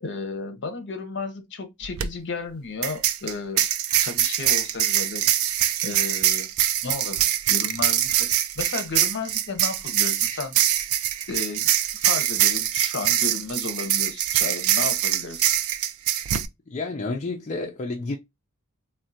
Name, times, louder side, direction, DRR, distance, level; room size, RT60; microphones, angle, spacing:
voice 1, 0.0-3.6 4.0-5.2 5.8-6.5 6.8-7.2 7.5-10.6 11.3-11.7 11.9-15.5, left 4 dB, 55° left, 0.8 m, -33 dB
sound 1, 1.8-2.1 2.8-16.5, right 11 dB, 70° right, 0.4 m, -23 dB
voice 2, 16.7-18.2, left 3 dB, 35° left, 0.4 m, -30 dB
3.7 x 2.1 x 2.6 m
head